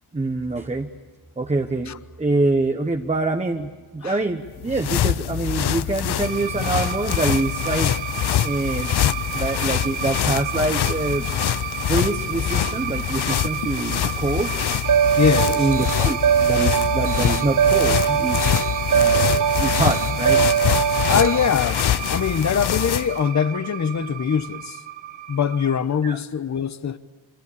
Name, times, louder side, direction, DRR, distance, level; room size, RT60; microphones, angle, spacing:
voice 1, 0.1-0.9 1.4-1.9 2.2-7.9 8.4-8.9 9.3-11.3 11.9-14.5 15.6-18.7 18.9-20.4 26.0-26.2, right 2 dB, 15° right, 1.1 m, -25 dB
sound 1, 4.5-23.2, left 11 dB, 55° left, 0.7 m, -25 dB
sound 2, 6.2-25.8, right 10 dB, 65° right, 1.8 m, -32 dB
sound 3, 14.8-21.5, right 8 dB, 40° right, 0.8 m, -21 dB
voice 2, 15.2-15.7 20.9-24.8 25.3-27.0, left 7 dB, 35° left, 1.0 m, -23 dB
25.0 x 24.5 x 8.6 m
wide cardioid pair, 130°, 48 cm